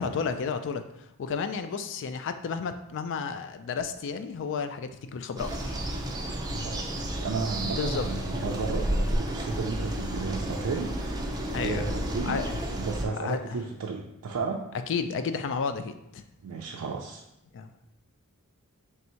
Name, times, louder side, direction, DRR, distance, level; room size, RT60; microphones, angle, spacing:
voice 1, 0.0-5.7 7.6-8.1 11.5-11.9 12.2-12.6 13.1-13.6 14.9-16.2 17.5-17.7, left 5 dB, 55° left, 9 dB, 0.3 m, -32 dB
sound 1, 5.4-13.1, right 1 dB, 15° right, 0.4 m, -31 dB
voice 2, 6.6-11.3 11.6-12.4 12.7-14.7 16.4-17.2, right 4 dB, 85° right, -1 dB, 0.4 m, -33 dB
3.5 x 2.7 x 4.3 m, 0.82 s
head